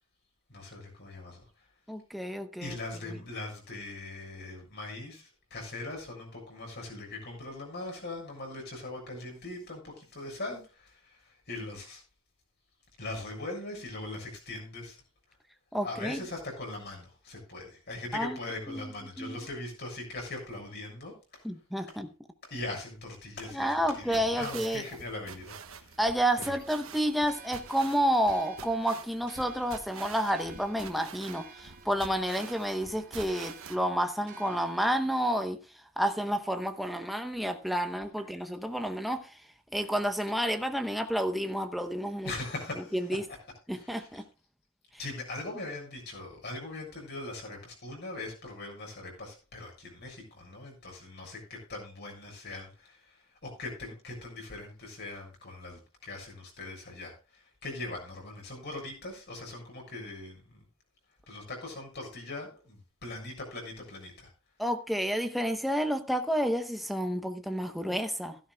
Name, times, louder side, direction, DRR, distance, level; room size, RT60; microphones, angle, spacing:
voice 1, 0.5-1.4 2.6-12.0 13.0-15.0 15.8-21.4 21.9-22.0 22.4-26.0 26.4-26.5 42.2-43.0 43.7-44.2 45.0-60.6 61.3-64.3, left 2 dB, 50° left, 7.0 m, -41 dB
voice 2, 1.9-2.8 3.1-3.2 15.7-16.2 18.1-18.4 18.7-18.9 19.2-19.4 21.4-22.1 23.5-24.8 26.0-35.6 36.0-39.4 39.7-42.3 42.9-43.2 43.7-44.2 64.6-68.4, equal, ahead, 0.8 m, -30 dB
sound 1, 23.4-33.8, right 6 dB, 75° right, 1.2 m, -47 dB
sound 2, 27.2-35.4, right 5 dB, 45° right, 4.7 m, -52 dB
16.0 x 13.0 x 2.2 m
head